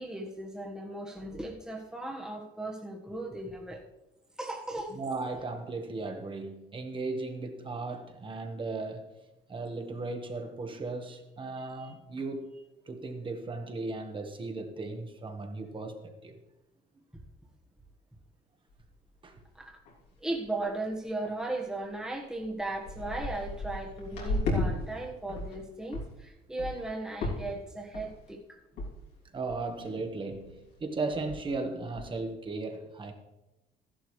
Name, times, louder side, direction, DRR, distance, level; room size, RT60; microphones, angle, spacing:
voice 1, 0.0-3.8 4.4-5.0 11.5-11.9 19.5-19.8 20.2-28.6, right 2 dB, 5° right, -1 dB, 1.5 m, -37 dB
voice 2, 4.9-9.1 9.5-12.5 12.9-16.4 19.2-19.4 29.3-33.1, right 3 dB, 30° right, 5 dB, 1.6 m, -36 dB
sound 1, 18.7-18.8 19.3-19.4 19.6-20.1 20.4-20.6 21.2-21.3 22.0-22.1 22.4-24.7 25.0-25.6 25.9-26.1 26.6-26.9 27.2-27.6 27.9-28.3 28.8-28.9 29.2-29.3 29.5-29.9 30.3-30.5 30.8-30.9 31.1-31.5 31.9-32.1, left 2 dB, 85° left, 3.1 m, -34 dB
13.5 x 11.5 x 3.3 m, 0.98 s
cardioid pair, 110°, 17 cm